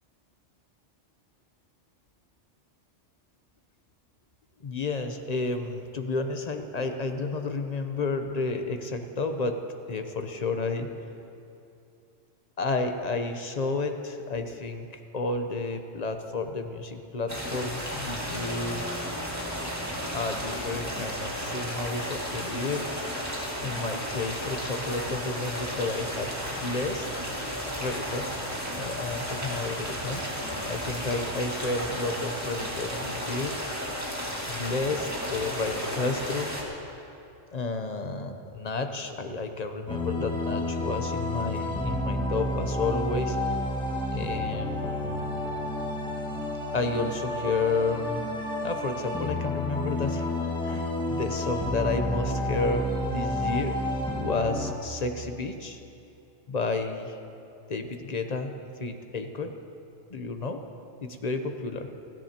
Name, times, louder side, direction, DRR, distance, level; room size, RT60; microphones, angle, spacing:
voice 1, 4.6-9.6 9.9-10.9 12.6-18.8 20.1-22.8 23.6-27.1 27.8-28.3 28.7-30.2 30.7-33.5 34.5-36.5 37.5-43.4 44.1-45.4 46.7-48.3 48.6-50.3 50.6-53.7 54.2-55.8 56.5-57.1 57.7-58.5 58.8-59.5 60.1-60.6 61.0-61.9, left 3 dB, 40° left, 6 dB, 0.8 m, -31 dB
sound 1, 17.3-36.6, equal, 15° right, 1.9 m, -33 dB
sound 2, 39.9-54.7, left 1 dB, 5° left, 1.4 m, -30 dB
30.0 x 10.5 x 2.9 m, 2.7 s
omnidirectional pair, 1.3 m